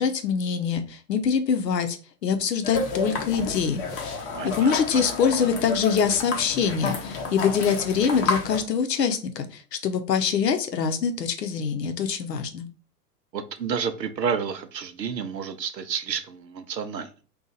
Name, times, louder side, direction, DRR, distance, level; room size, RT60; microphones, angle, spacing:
voice 1, 0.0-2.0 2.2-3.8 4.4-12.7, left 6 dB, 80° left, 7 dB, 0.7 m, -24 dB
sound 1, 2.6-8.6, left 4 dB, 35° left, 0.7 m, -30 dB
voice 2, 4.3-5.0 13.3-17.1, right 6 dB, 90° right, 10 dB, 0.7 m, -30 dB
2.7 x 2.4 x 3.8 m, 0.36 s
hypercardioid pair, 120°, 49 cm